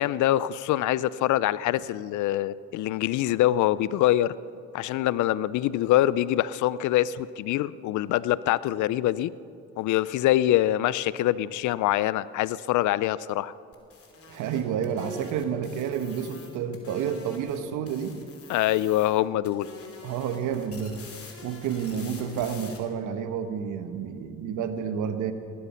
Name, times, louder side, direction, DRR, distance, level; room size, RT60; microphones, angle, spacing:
voice 1, 0.0-4.4 4.7-9.3 9.8-13.5 18.5-19.7, left 14 dB, 75° left, 19 dB, 0.5 m, -24 dB
sound 1, 13.7-17.6 17.9-19.2 19.5-22.8, left 4 dB, 50° left, 3.1 m, -47 dB
voice 2, 14.3-18.2 20.0-21.0 21.4-25.3, right 7 dB, 80° right, 9 dB, 1.2 m, -30 dB
18.5 x 13.0 x 5.7 m, 2.5 s
supercardioid pair, 65°, 30 cm